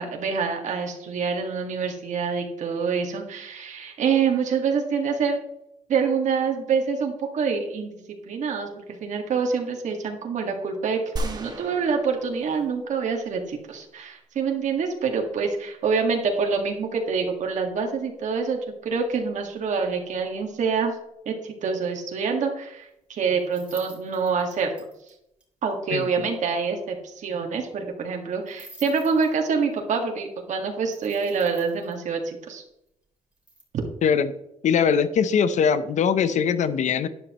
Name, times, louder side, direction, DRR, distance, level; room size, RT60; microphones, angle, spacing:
voice 1, 0.0-5.4 5.9-8.0 8.3-20.9 21.3-24.8 25.6-32.6, right 5 dB, 65° right, 2 dB, 1.9 m, -26 dB
sound 1, 11.2-13.4, right 1 dB, 30° right, 1.4 m, -35 dB
sound 2, 23.4-25.1 25.4-25.5 25.7-25.8 26.0-26.1 26.3-26.4 28.5-29.7 30.9-31.9 33.3-33.6, right 1 dB, 10° right, 2.9 m, -47 dB
voice 2, 34.0-34.3 34.6-37.1, left 7 dB, 65° left, 13 dB, 0.8 m, -21 dB
12.0 x 10.5 x 3.1 m, 0.81 s
wide cardioid pair, 145°, 13 cm